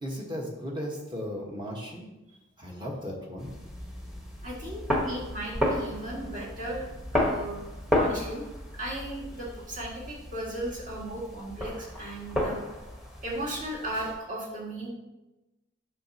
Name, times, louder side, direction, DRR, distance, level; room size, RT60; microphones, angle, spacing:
voice 1, 0.0-2.1 2.6-3.5, equal, 20° right, -1 dB, 1.2 m, -36 dB
sound 1, 3.4-14.1, left 1 dB, 5° right, 1.1 m, -33 dB
voice 2, 4.4-6.9 7.1-7.6 7.9-8.4 8.8-12.6 13.2-14.9, right 1 dB, 40° right, -5 dB, 2.0 m, -36 dB
8.8 x 6.0 x 2.8 m, 1.0 s
head